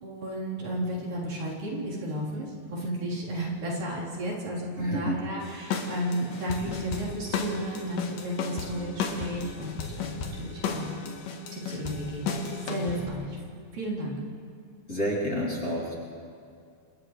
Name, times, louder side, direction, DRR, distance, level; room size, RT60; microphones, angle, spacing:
voice 1, 0.0-11.2 11.5-13.4 13.7-14.2, right 1 dB, 85° right, -6 dB, 5.6 m, -33 dB
voice 2, 4.8-5.2 14.9-15.9, equal, 25° left, -6 dB, 3.4 m, -29 dB
sound 1, 5.4-13.1, left 5 dB, 80° left, 3.2 m, -34 dB
29.0 x 27.0 x 3.3 m, 2.3 s
omnidirectional pair, 3.8 m